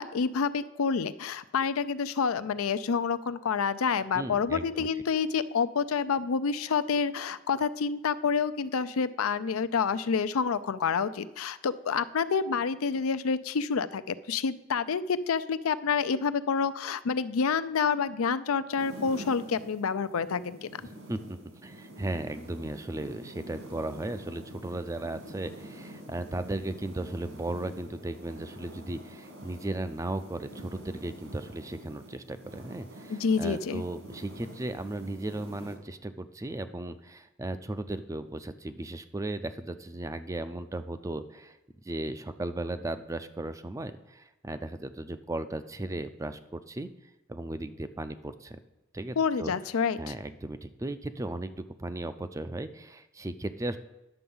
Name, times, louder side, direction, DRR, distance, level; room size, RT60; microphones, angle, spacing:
voice 1, 0.0-20.7 33.1-33.8 49.2-50.1, left 5 dB, 85° left, 13 dB, 0.5 m, -28 dB
voice 2, 4.1-4.9 21.1-21.2 21.6-41.6 41.8-46.9 47.3-48.6 48.9-49.5 50.0-53.8, right 2 dB, 15° right, 11 dB, 0.4 m, -36 dB
sound 1, 18.8-35.8, right 1 dB, 70° right, 2.2 m, -47 dB
9.9 x 6.8 x 5.5 m, 0.98 s
head